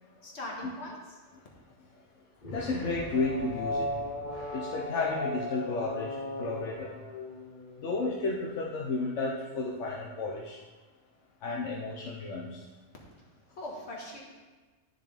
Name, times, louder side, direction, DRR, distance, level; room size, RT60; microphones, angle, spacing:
voice 1, 0.2-1.2 13.2-14.2, left 1 dB, 65° left, -2 dB, 1.8 m, -41 dB
sound 1, 2.4-8.0, left 1 dB, 45° left, 1.1 m, -37 dB
voice 2, 2.5-3.9 4.3-6.1 6.4-6.9 7.8-10.6 11.4-12.5, left 3 dB, 80° left, -3 dB, 1.2 m, -32 dB
10.5 x 6.5 x 3.4 m, 1.3 s
omnidirectional pair, 1.2 m